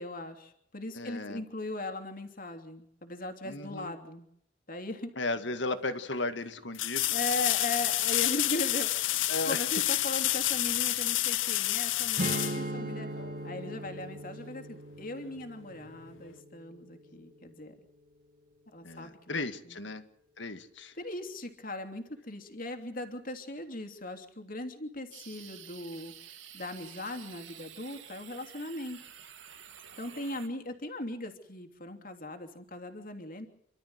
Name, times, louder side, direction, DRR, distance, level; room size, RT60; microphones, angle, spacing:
voice 1, 0.0-4.3 4.7-5.1 7.1-13.1 13.4-17.7 18.7-19.4 19.6-19.8 20.9-26.1 26.5-29.0 30.0-33.5, left 2 dB, 45° left, 6 dB, 3.0 m, -39 dB
voice 2, 0.9-1.4 3.4-3.9 5.2-7.1 9.3-9.6 18.8-20.0 20.4-20.9, left 2 dB, 70° left, 9 dB, 1.9 m, -35 dB
sound 1, 5.4-5.5 6.7-13.4 16.2-16.3, left 15 dB, 85° left, 0.7 m, -29 dB
Strum, 12.2-17.5, right 1 dB, 45° right, 2.3 m, -39 dB
sound 2, 25.1-30.5, right 9 dB, 85° right, 2.4 m, -50 dB
29.0 x 13.0 x 8.0 m, 0.75 s
head